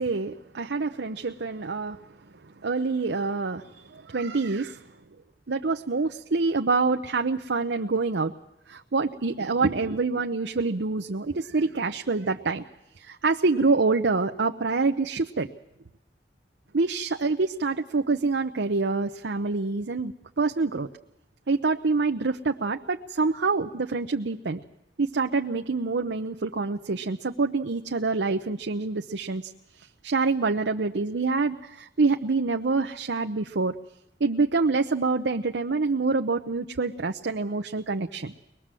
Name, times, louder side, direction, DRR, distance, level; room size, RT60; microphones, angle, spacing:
voice 1, 0.0-2.0 2.6-4.8 5.5-8.3 8.7-12.6 13.0-15.5 16.7-20.9 21.5-24.6 25.0-33.7 34.2-38.3, right 3 dB, 90° right, 5 dB, 0.8 m, -26 dB
23.5 x 20.0 x 7.5 m, 0.89 s
head